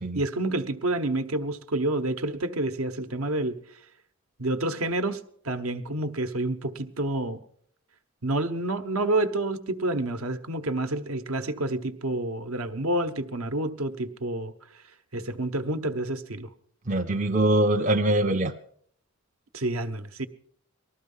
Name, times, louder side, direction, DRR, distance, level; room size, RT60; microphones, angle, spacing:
voice 1, 0.1-3.6 4.4-7.4 8.2-14.5 15.1-16.5 19.5-20.3, right 2 dB, 75° right, 8 dB, 1.1 m, -28 dB
voice 2, 16.9-18.5, right 1 dB, 35° right, 5 dB, 0.5 m, -23 dB
19.5 x 13.5 x 5.5 m, 0.63 s
head